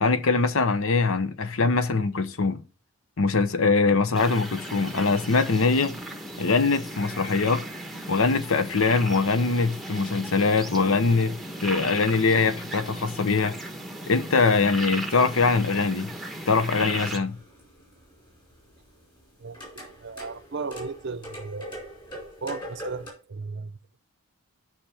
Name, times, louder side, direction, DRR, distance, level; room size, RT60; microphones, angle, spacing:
voice 1, 0.0-2.6 3.2-6.0 6.4-7.6 8.1-11.4 11.6-13.6 14.1-16.1 16.5-17.4, left 4 dB, 65° left, 0.7 m, -22 dB
sound 1, 4.1-17.2, right 1 dB, ahead, 0.9 m, -37 dB
sound 2, 16.8-23.1, equal, 20° left, 4.7 m, -42 dB
voice 2, 20.0-21.8 22.1-24.0, right 4 dB, 50° right, 0.6 m, -36 dB
11.5 x 5.8 x 3.4 m
head